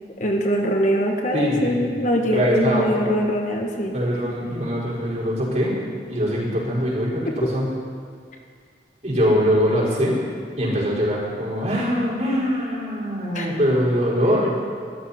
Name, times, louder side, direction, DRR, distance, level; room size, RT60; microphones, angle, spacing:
voice 1, 0.2-4.0 7.2-7.5 13.3-13.6, equal, 45° left, 2 dB, 1.5 m, -23 dB
voice 2, 1.3-1.9 2.3-3.0 3.9-5.8 6.1-7.7 9.0-10.2 10.6-14.5, equal, 40° right, -6 dB, 5.2 m, -22 dB
23.0 x 13.5 x 4.4 m, 2.1 s
head